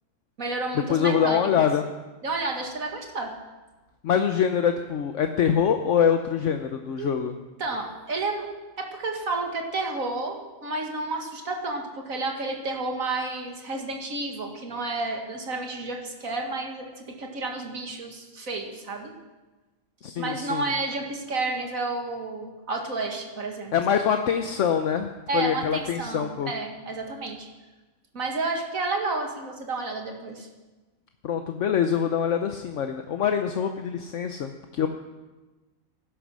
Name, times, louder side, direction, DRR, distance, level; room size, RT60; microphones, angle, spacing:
voice 1, 0.4-1.7 2.2-3.3 7.0-7.1 7.6-8.5 8.8-19.1 20.2-23.7 25.3-27.5 28.1-30.5, right 3 dB, 85° right, 2 dB, 2.4 m, -31 dB
voice 2, 0.9-1.9 4.0-7.4 20.0-20.7 23.7-26.5 31.2-34.9, left 8 dB, 65° left, 6 dB, 1.1 m, -24 dB
16.5 x 11.5 x 6.2 m, 1.2 s
omnidirectional pair, 1.4 m